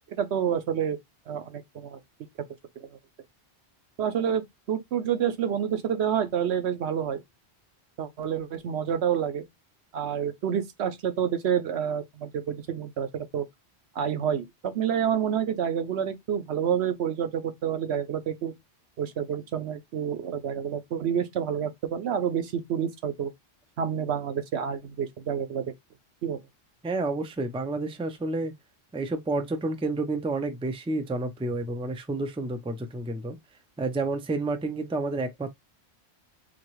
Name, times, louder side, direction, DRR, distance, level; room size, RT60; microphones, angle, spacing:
voice 1, 0.1-1.0 1.3-2.0 2.8-2.9 4.0-7.2 8.0-9.4 9.9-13.4 14.0-18.5 19.0-23.3 23.8-25.6 26.2-26.4, right 8 dB, 80° right, 1.0 m, -28 dB
voice 2, 26.8-28.5 28.9-33.4 33.8-35.5, right 2 dB, 10° right, 0.3 m, -30 dB
4.0 x 2.9 x 3.1 m
omnidirectional pair, 1.1 m